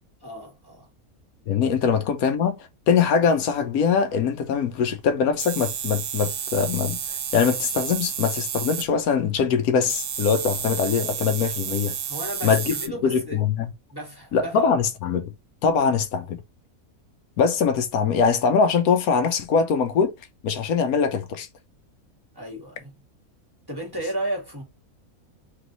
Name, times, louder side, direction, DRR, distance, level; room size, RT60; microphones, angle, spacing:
voice 1, 0.2-0.9 12.0-13.4 13.9-14.6 22.3-22.9 23.7-24.6, right 1 dB, 15° right, 1.7 m, -33 dB
voice 2, 1.5-12.0 12.4-12.8 13.0-13.7 14.3-15.3 15.6-16.4 17.4-20.1 20.4-21.5, left 6 dB, 75° left, 1.2 m, -22 dB
Tattoo maschine, 5.4-8.9 9.9-12.9, right 8 dB, 65° right, 1.1 m, -31 dB
3.4 x 3.3 x 3.9 m
omnidirectional pair, 1.6 m